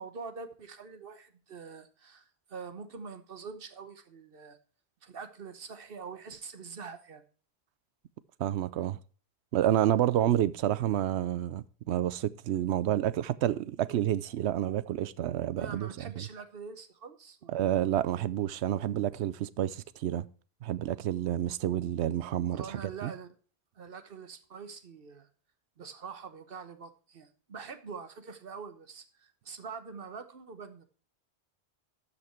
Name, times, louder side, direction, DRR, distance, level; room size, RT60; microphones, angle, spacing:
voice 1, 0.0-4.6 5.0-7.2 15.6-17.9 22.5-23.3 23.7-25.3 25.8-30.9, right 5 dB, 60° right, 1.2 m, -44 dB
voice 2, 8.4-9.0 9.5-15.9 16.2-16.3 17.5-20.2 20.6-23.1, right 12 dB, 80° right, 0.9 m, -29 dB
12.5 x 5.8 x 4.4 m
omnidirectional pair, 1.1 m